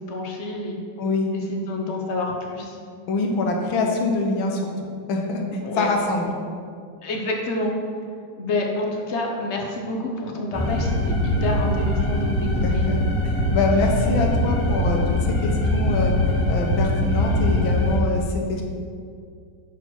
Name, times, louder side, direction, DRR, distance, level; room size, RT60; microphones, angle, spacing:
voice 1, 0.1-0.8 1.3-2.8 5.6-5.9 7.0-7.7 8.4-12.8, left 2 dB, 45° left, 1 dB, 1.0 m, -28 dB
voice 2, 1.0-1.3 3.1-4.6 5.1-6.3 12.6-16.1 16.5-18.6, left 3 dB, 80° left, 1 dB, 1.7 m, -24 dB
sound 1, 10.5-18.0, left 1 dB, 15° left, 0.4 m, -22 dB
11.0 x 4.5 x 4.5 m, 2.2 s
omnidirectional pair, 2.2 m